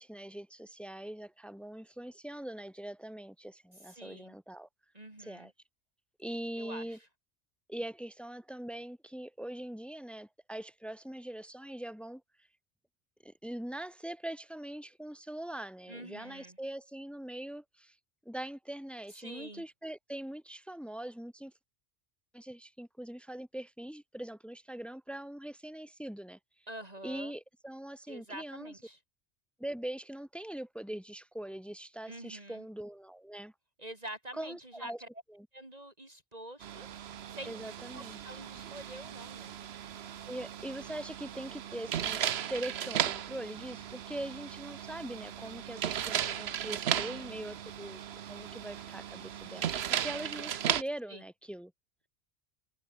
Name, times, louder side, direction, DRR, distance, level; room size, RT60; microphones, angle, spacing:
voice 1, 0.0-4.7 5.2-5.5 6.2-7.0 7.7-12.2 13.2-18.0 18.2-21.5 22.3-26.4 27.0-28.8 29.6-33.5 34.3-35.0 35.3-35.5 37.4-38.2 40.3-48.0 48.3-51.7, right 1 dB, ahead, 3.3 m, -42 dB
voice 2, 3.9-4.3 4.9-5.5 6.6-7.0 15.9-16.6 19.1-19.6 26.7-27.3 28.1-29.0 32.1-32.6 33.8-35.1 35.5-36.9 37.3-37.5 37.9-39.5 46.9-47.4 51.1-51.2, right 1 dB, 35° right, 3.5 m, -46 dB
sound 1, 36.6-50.8, right 9 dB, 65° right, 1.0 m, -36 dB
omnidirectional pair, 1.2 m